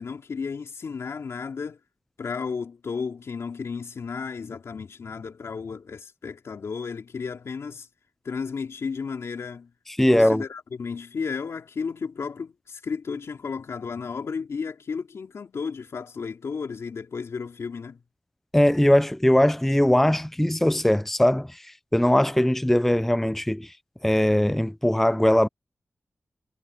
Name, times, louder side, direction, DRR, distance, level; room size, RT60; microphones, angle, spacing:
voice 1, 0.0-1.8 2.2-7.9 8.2-9.7 10.1-18.0 23.0-23.1, left 5 dB, 75° left, 3.1 m, -33 dB
voice 2, 9.9-10.4 18.5-21.6 21.9-23.7 24.0-25.5, left 1 dB, 5° left, 0.5 m, -20 dB
wide cardioid pair, 90°, 5 cm